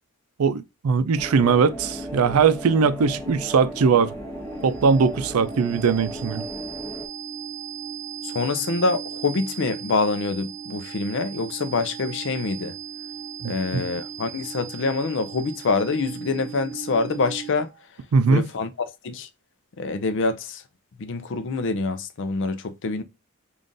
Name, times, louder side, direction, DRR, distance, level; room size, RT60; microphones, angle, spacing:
voice 1, 0.4-4.1 4.6-6.4 13.4-13.8 18.1-18.5, right 5 dB, 85° right, 0.4 m, -20 dB
sound 1, 1.2-7.1, equal, 10° left, 1.0 m, -36 dB
sound 2, 3.9-17.8, right 8 dB, 30° right, 0.6 m, -38 dB
voice 2, 8.2-12.7 13.4-17.7 18.3-18.7 19.0-19.3 19.8-20.6 21.0-23.0, left 3 dB, 55° left, 0.5 m, -25 dB
3.7 x 2.5 x 3.8 m
head